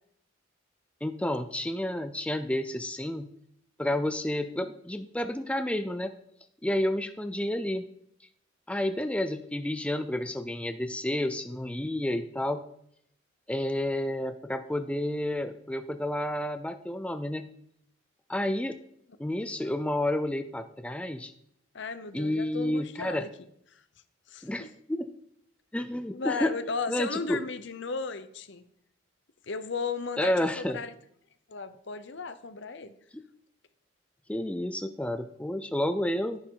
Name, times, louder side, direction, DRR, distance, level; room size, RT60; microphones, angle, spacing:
voice 1, 1.0-3.3 3.8-6.1 6.6-7.9 8.7-12.6 13.5-17.5 18.3-18.8 19.2-21.3 22.1-23.2 24.4-25.1 25.7-26.5 26.9-27.4 30.2-30.8 33.1-33.2 34.3-36.4, left 1 dB, 5° left, 9 dB, 0.5 m, -30 dB
voice 2, 21.7-23.3 23.7-23.8 24.3-24.7 26.1-28.6 29.4-30.9 31.5-32.9, left 4 dB, 60° left, 12 dB, 0.8 m, -35 dB
11.5 x 10.5 x 3.9 m, 0.70 s
head